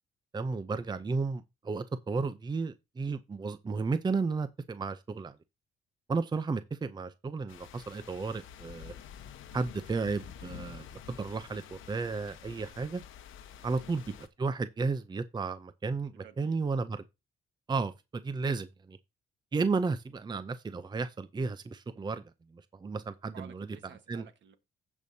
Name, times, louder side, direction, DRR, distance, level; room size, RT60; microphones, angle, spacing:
voice 1, 0.3-5.4 6.1-8.9 9.5-13.0 13.6-17.0 17.7-19.0 19.5-22.2 22.5-23.7 24.1-24.2, right 4 dB, 20° right, 0.6 m, -33 dB
sound 1, 7.5-14.3, left 8 dB, 85° left, 1.0 m, -49 dB
voice 2, 16.1-16.6 23.3-24.6, right 8 dB, 65° right, 1.4 m, -54 dB
15.5 x 5.4 x 2.8 m
cardioid pair, 90°, 20 cm